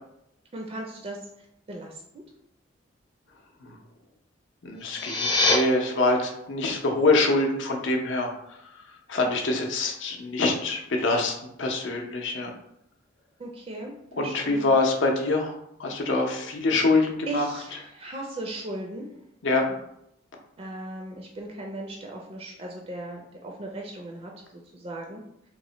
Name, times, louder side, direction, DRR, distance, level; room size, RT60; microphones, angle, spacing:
voice 1, 0.5-1.3 1.7-2.2 13.4-14.8 17.3-19.1 20.6-25.2, right 1 dB, 30° right, 0 dB, 0.4 m, -37 dB
voice 2, 4.6-8.3 9.1-12.5 14.1-15.5 15.8-17.5 19.4-19.6, left 2 dB, 70° left, 2 dB, 0.6 m, -25 dB
sound 1, 4.7-5.6, left 3 dB, 20° left, 0.5 m, -23 dB
3.0 x 2.1 x 3.9 m, 0.81 s
head